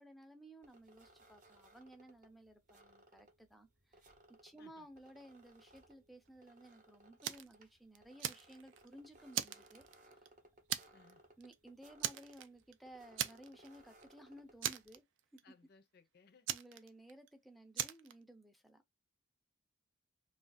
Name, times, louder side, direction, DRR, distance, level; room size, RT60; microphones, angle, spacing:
voice 1, 0.0-4.1 4.4-9.8 10.1-10.3 11.4-15.0 15.3-15.5 16.5-18.8, right 1 dB, ahead, 0.4 m, -57 dB
sound 1, 0.6-15.0, right 1 dB, 40° right, 0.7 m, -65 dB
Fire, 7.2-7.5 7.9-8.9 9.3-10.3 10.7-11.1 11.4-11.5 12.0-12.7 13.2-13.7 14.0-14.1 14.6-15.4 16.5-17.3 17.7-18.1, right 11 dB, 75° right, 0.4 m, -39 dB
voice 2, 15.4-16.5, left 4 dB, 55° left, 0.5 m, -65 dB
2.4 x 2.3 x 3.9 m
head